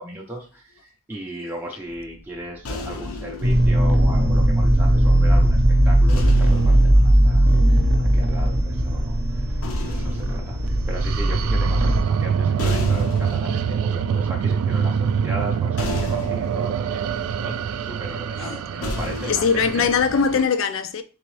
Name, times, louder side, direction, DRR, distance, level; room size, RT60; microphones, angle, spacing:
voice 1, 0.0-17.0 17.4-19.4 19.7-19.9, right 1 dB, 10° right, 0.5 m, -37 dB
sound 1, 1.9-5.2 6.1-8.4 9.3-20.4, left 2 dB, 80° left, 0.7 m, -35 dB
sound 2, 3.4-12.0, right 1 dB, 55° right, 0.7 m, -18 dB
sound 3, 10.7-20.4, right 7 dB, 85° right, 0.3 m, -25 dB
voice 2, 19.2-21.0, left 6 dB, 60° left, 0.4 m, -21 dB
3.8 x 3.5 x 3.2 m
head